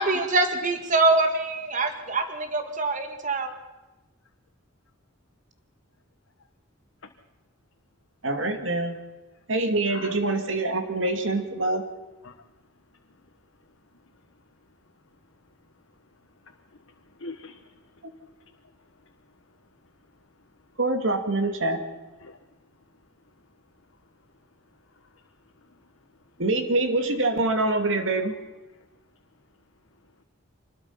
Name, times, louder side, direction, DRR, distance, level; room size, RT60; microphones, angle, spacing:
voice 1, 0.0-3.5, right 2 dB, 40° right, 6 dB, 2.0 m, -24 dB
voice 2, 8.2-9.0 9.5-11.8 18.0-18.1 20.8-21.8 26.4-28.3, right 2 dB, 70° right, 6 dB, 2.4 m, -25 dB
voice 3, 9.9-10.2 12.2-12.4 16.4-18.0 18.6-19.1 21.4-21.8 22.2-22.4 24.9-25.2 25.6-25.8 27.8-28.2 28.7-28.9, left 3 dB, 90° left, 2 dB, 1.4 m, -46 dB
25.5 x 20.5 x 5.8 m, 1.1 s
head